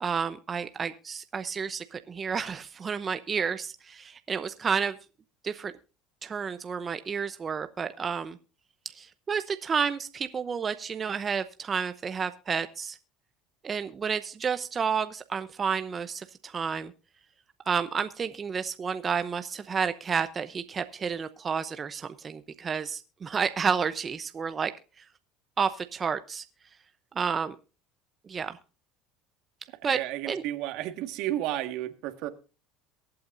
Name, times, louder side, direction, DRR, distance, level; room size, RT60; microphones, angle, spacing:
voice 1, 0.0-5.0 5.4-5.7 6.2-8.4 8.9-13.0 13.6-16.9 17.7-24.7 25.0-25.1 25.6-26.4 27.1-27.5 28.3-28.6 29.8-30.0 30.2-30.4, right 6 dB, 25° right, 10 dB, 0.7 m, -30 dB
voice 2, 29.8-32.3, right 14 dB, 65° right, 9 dB, 1.6 m, -32 dB
23.0 x 8.7 x 2.6 m, 0.33 s
supercardioid pair, 115°, 0 cm